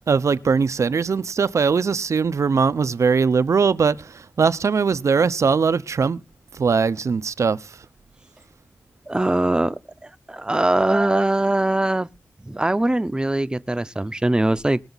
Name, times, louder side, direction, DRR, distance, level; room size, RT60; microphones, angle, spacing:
voice 1, 0.1-6.2 6.6-7.6, right 5 dB, 80° right, 0.7 m, -20 dB
voice 2, 9.1-12.1 12.4-14.8, right 1 dB, 15° right, 0.6 m, -22 dB
20.5 x 6.9 x 4.0 m
wide cardioid pair, 80°, 5 cm